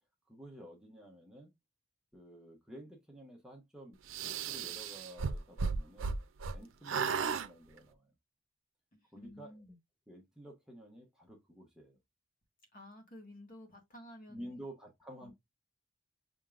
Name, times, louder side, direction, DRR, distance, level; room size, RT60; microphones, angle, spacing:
voice 1, 0.3-1.5 2.1-6.2 6.5-8.1 9.1-9.5 10.1-12.0 14.3-15.3, right 1 dB, 5° right, 0.9 m, -51 dB
sound 1, 4.1-6.6 6.8-7.5, right 5 dB, 80° right, 0.5 m, -34 dB
voice 2, 8.9-9.8 12.7-14.6 15.2-15.3, left 1 dB, 45° left, 1.6 m, -53 dB
5.8 x 3.6 x 2.4 m
head